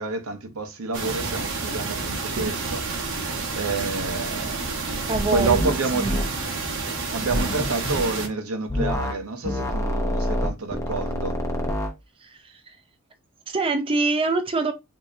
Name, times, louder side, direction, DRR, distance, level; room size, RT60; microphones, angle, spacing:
voice 1, 0.0-4.7 5.3-6.1 7.1-11.4, right 3 dB, 85° right, 0.8 m, -29 dB
sound 1, 0.9-8.3, right 3 dB, 60° right, 1.0 m, -29 dB
voice 2, 5.1-6.2 12.2-12.8 13.5-14.7, right 3 dB, 25° right, 0.5 m, -25 dB
sound 2, 5.5-5.8 6.0-6.3 7.3-8.0 8.7-9.2 9.4-11.9, left 1 dB, 15° left, 0.8 m, -26 dB
4.9 x 2.8 x 2.6 m
head